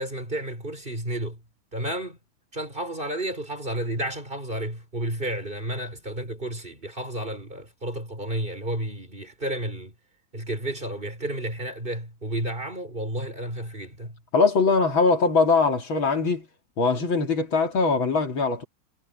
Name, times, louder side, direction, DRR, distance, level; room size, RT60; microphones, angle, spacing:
voice 1, 0.0-1.4 1.7-2.2 2.5-9.9 10.3-14.2, right 1 dB, 25° right, 4.7 m, -31 dB
voice 2, 14.3-16.5 16.8-18.6, left 4 dB, 70° left, 3.3 m, -21 dB
omnidirectional pair, 2.3 m